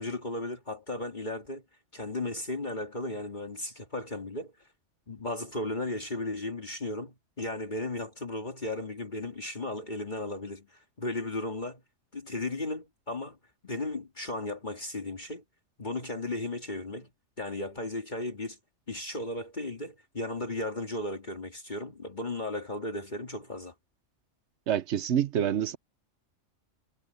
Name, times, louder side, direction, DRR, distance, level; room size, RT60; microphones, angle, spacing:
voice 1, 0.0-1.6 1.9-4.5 5.1-11.8 12.1-13.4 13.6-15.4 15.8-17.1 17.4-18.6 18.9-23.7, left 2 dB, 40° left, 2.4 m, -35 dB
voice 2, 24.7-25.8, right 9 dB, 65° right, 1.1 m, -27 dB
omnidirectional pair, 1.3 m